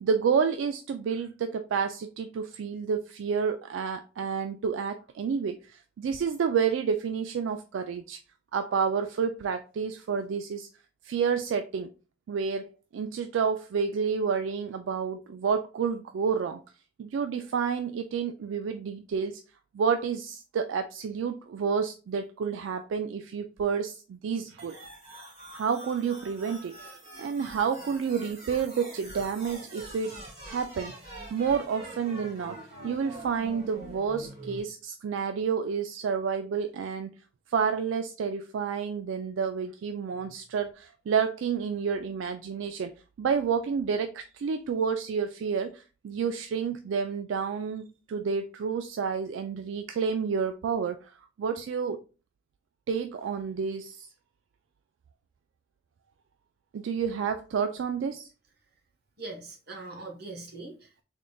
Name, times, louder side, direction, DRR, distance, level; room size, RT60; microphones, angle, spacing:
voice 1, 0.0-8.2 8.5-10.7 11.0-11.9 12.3-16.6 17.0-19.4 19.7-24.8 25.5-26.7 27.2-30.9 31.3-32.6 32.8-37.1 37.5-42.9 43.2-51.0 51.4-52.0 52.9-54.1 56.7-58.3, right 6 dB, 75° right, 0.3 m, -29 dB
sound 1, 24.6-34.6, right 1 dB, 35° right, 2.1 m, -44 dB
voice 2, 59.2-61.0, right 2 dB, 55° right, 1.1 m, -41 dB
3.8 x 3.6 x 2.3 m
head